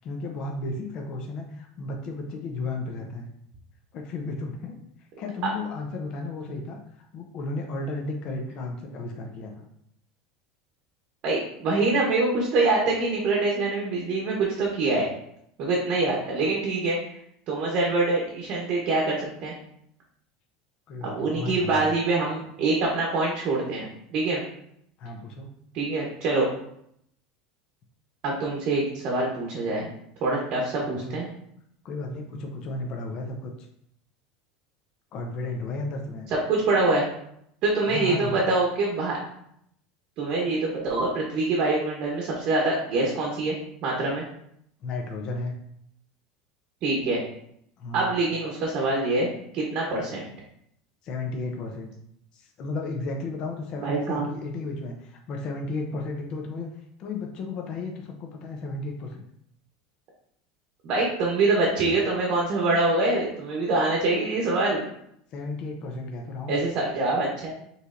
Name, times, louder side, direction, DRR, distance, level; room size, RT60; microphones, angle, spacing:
voice 1, 0.0-3.3 3.9-4.8 5.2-9.5 20.9-21.9 25.0-25.5 30.8-31.2 31.8-33.5 35.1-36.3 37.9-38.4 44.8-45.5 47.8-48.1 51.0-51.9 52.3-56.7 57.0-59.3 65.3-66.6, left 2 dB, 35° left, 2 dB, 0.6 m, -34 dB
voice 2, 11.2-15.1 15.6-17.0 17.5-19.5 21.0-24.4 25.7-26.5 28.2-29.9 30.2-31.3 36.3-37.0 37.6-39.2 40.2-43.5 43.8-44.2 46.8-47.2 47.9-50.2 53.8-54.3 60.8-64.8 66.5-67.5, right 2 dB, 40° right, -2 dB, 0.9 m, -25 dB
5.2 x 3.2 x 2.5 m, 0.72 s
supercardioid pair, 160°, 2 cm